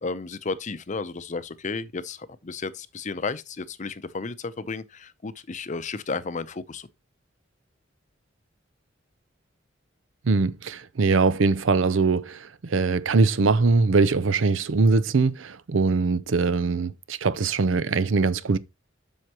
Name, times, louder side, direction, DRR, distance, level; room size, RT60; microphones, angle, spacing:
voice 1, 0.0-6.9, left 4 dB, 40° left, 0.6 m, -33 dB
voice 2, 10.3-18.6, right 4 dB, 80° right, 0.6 m, -22 dB
7.8 x 6.4 x 2.9 m
head